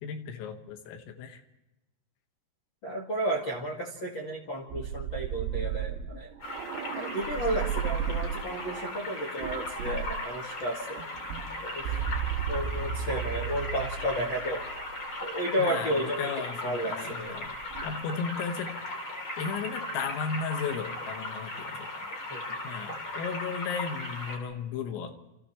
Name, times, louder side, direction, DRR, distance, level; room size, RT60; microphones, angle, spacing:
voice 1, 0.0-1.4 15.6-17.6 17.8-18.7 19.4-22.1 22.6-25.2, left 6 dB, 90° left, 6 dB, 4.4 m, -35 dB
voice 2, 2.8-6.3 6.9-11.0 11.6-12.1 12.5-14.6 15.2-16.3 16.6-17.4 22.3-22.4, equal, 65° left, 0 dB, 1.1 m, -32 dB
sound 1, 4.7-8.9 9.4-10.3 11.0-15.1 17.4-17.9, right 9 dB, 80° right, 3.8 m, -34 dB
sound 2, 6.4-24.4, left 2 dB, 30° left, 3.7 m, -37 dB
29.5 x 27.5 x 3.3 m, 0.96 s
omnidirectional pair, 5.8 m